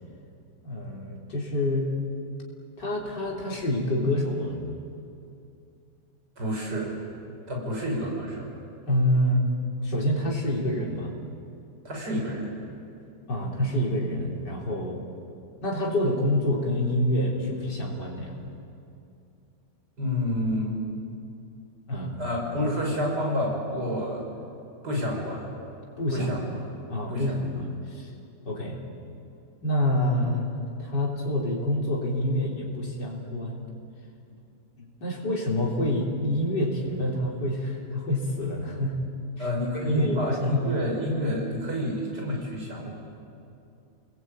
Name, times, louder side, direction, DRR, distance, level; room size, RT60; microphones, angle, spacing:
voice 1, 0.6-1.9 2.8-4.6 8.9-9.5 9.8-11.1 13.3-15.0 15.6-18.4 21.9-22.2 22.6-22.7 26.0-26.4 26.9-28.1 28.5-28.8 29.6-30.5 30.8-33.6 34.8-39.0 39.4-39.5 39.7-40.7, left 1 dB, 85° left, -2 dB, 4.2 m, -27 dB
voice 2, 6.4-7.0 7.5-8.5 11.8-12.5 20.0-20.7 22.2-24.2 24.8-25.5 26.1-26.4 27.1-27.3 39.4-43.0, left 1 dB, 70° right, -1 dB, 6.4 m, -29 dB
29.5 x 20.5 x 9.0 m, 2.6 s
omnidirectional pair, 1.8 m